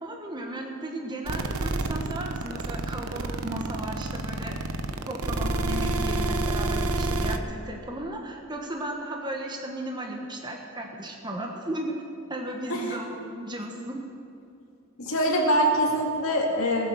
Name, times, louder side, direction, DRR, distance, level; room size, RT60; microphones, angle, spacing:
voice 1, 0.0-4.6 5.1-11.9 12.3-14.0, right 1 dB, 20° right, 1 dB, 1.3 m, -35 dB
sound 1, 1.3-7.4, right 2 dB, 90° right, 0.9 m, -28 dB
voice 2, 15.0-16.9, equal, 70° left, -2 dB, 2.1 m, -24 dB
19.5 x 7.7 x 6.4 m, 2.5 s
head